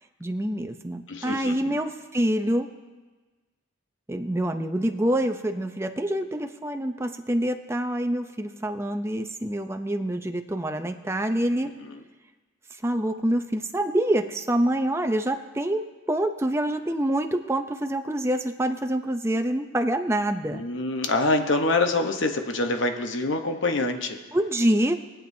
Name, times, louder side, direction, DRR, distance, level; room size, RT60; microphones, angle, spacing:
voice 1, 0.2-2.7 4.1-11.7 12.8-20.6 24.3-24.9, right 1 dB, 15° right, 6 dB, 0.5 m, -26 dB
voice 2, 1.1-1.8 11.8-12.0 20.5-24.2, left 2 dB, 65° left, 5 dB, 1.0 m, -25 dB
22.5 x 8.5 x 2.7 m, 1.3 s
head